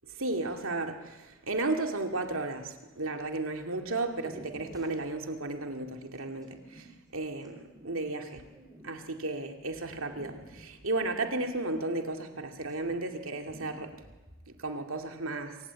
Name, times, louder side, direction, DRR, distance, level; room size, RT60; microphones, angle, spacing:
voice 1, 0.1-8.4 8.8-14.0 14.6-15.6, right 2 dB, 75° right, 4 dB, 2.4 m, -34 dB
sound 1, 2.7-3.1 3.8-3.9 4.1-9.4 9.9-12.4 12.6-13.2 13.5-14.5, equal, 20° right, 4.4 m, -52 dB
26.5 x 16.0 x 8.6 m, 1.1 s
head